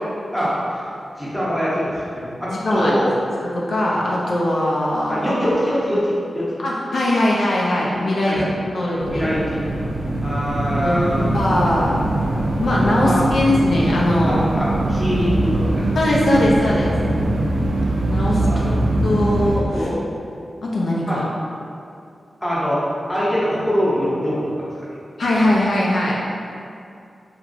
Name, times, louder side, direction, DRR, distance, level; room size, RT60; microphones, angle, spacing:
voice 1, 0.3-0.8 1.2-3.1 5.1-6.5 8.2-8.5 9.1-9.6 10.2-11.3 13.0-13.2 14.3-16.0 18.4-18.6 19.7-20.0 21.1-21.2 22.4-22.8 23.1-24.4 25.4-25.5, equal, 5° left, -9 dB, 0.7 m, -23 dB
voice 2, 2.4-2.9 3.5-5.3 6.6-8.4 8.7-9.3 10.4-12.0 12.6-14.4 15.9-16.9 18.1-18.6 19.0-19.9 20.6-21.2 25.2-26.2, left 1 dB, 70° left, -4 dB, 0.4 m, -20 dB
sound 1, 9.0-19.6, right 1 dB, 90° right, 0.3 m, -22 dB
2.9 x 2.4 x 2.5 m, 2.5 s
wide cardioid pair, 130°, 0 cm